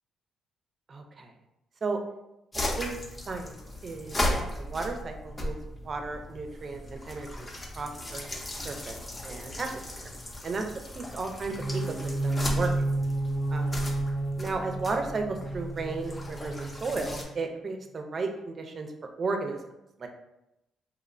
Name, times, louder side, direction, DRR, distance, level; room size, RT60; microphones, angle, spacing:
voice 1, 0.9-1.3 1.8-2.0 2.8-2.9 3.3-3.6 3.8-5.6 5.8-7.5 7.8-8.3 8.6-9.8 10.4-10.6 10.9-12.7 13.5-13.7 14.4-18.9 19.2-19.6 20.0-20.1, right 3 dB, 45° right, 4 dB, 0.4 m, -34 dB
sound 1, 2.5-17.2, left 1 dB, 25° left, 0.4 m, -37 dB
sound 2, 11.5-17.4, right 2 dB, 70° left, 0.6 m, -31 dB
2.8 x 2.0 x 2.5 m, 0.89 s
cardioid pair, 90°, 0 cm